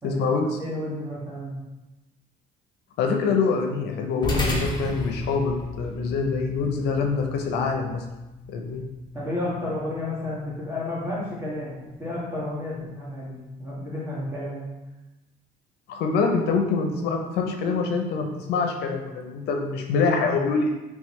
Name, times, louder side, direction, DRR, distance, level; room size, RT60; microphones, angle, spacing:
voice 1, 0.0-0.5 3.0-8.0 8.5-8.8 15.9-20.7, left 4 dB, 75° left, 3 dB, 0.6 m, -25 dB
voice 2, 0.6-1.6 9.1-14.7, left 1 dB, 15° right, -7 dB, 1.4 m, -32 dB
sound 1, 4.2-12.9, left 2 dB, 25° left, 0.8 m, -35 dB
3.6 x 3.1 x 3.1 m, 1.0 s
cardioid pair, 110°, 17 cm